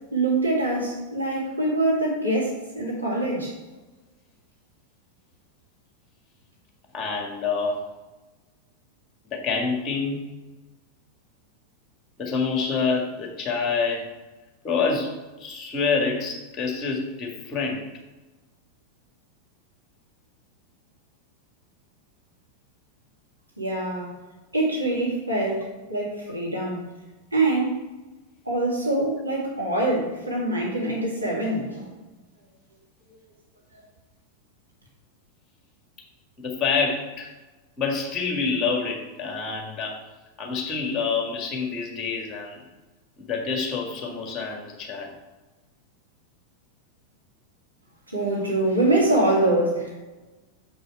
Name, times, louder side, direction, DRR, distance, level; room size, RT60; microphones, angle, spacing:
voice 1, 0.1-3.6 23.6-24.2 24.5-26.9 27.3-27.8 28.5-31.9 48.1-50.0, right 2 dB, 85° right, -4 dB, 2.0 m, -24 dB
voice 2, 6.9-7.8 9.3-10.3 12.2-14.1 14.6-17.9 36.4-37.3 37.8-40.0 40.4-42.6 43.2-45.1, left 5 dB, 25° left, 1 dB, 1.8 m, -27 dB
6.9 x 5.4 x 4.3 m, 1.2 s
figure-of-eight pair, 90°, 0 cm